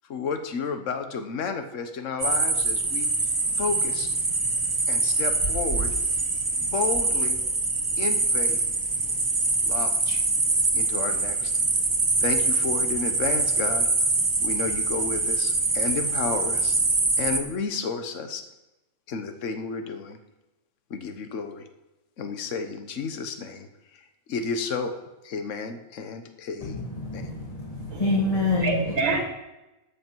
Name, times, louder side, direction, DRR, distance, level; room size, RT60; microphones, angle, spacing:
voice 1, 0.1-3.1 3.6-4.1 4.9-5.9 6.6-7.4 8.0-8.6 9.7-10.2 10.7-11.5 12.2-13.9 14.4-16.8 17.2-18.4 19.1-20.2 20.9-21.6 22.2-23.7 24.3-24.9 25.2-26.8 27.1-27.2, left 5 dB, 60° left, 7 dB, 1.4 m, -31 dB
sound 1, 2.2-17.4, right 3 dB, 35° right, 1.6 m, -24 dB
voice 2, 26.6-28.8, left 3 dB, 25° left, -2 dB, 1.6 m, -27 dB
voice 3, 27.9-29.2, right 4 dB, 65° right, 3 dB, 2.3 m, -28 dB
13.0 x 8.7 x 4.6 m, 1.0 s
omnidirectional pair, 1.5 m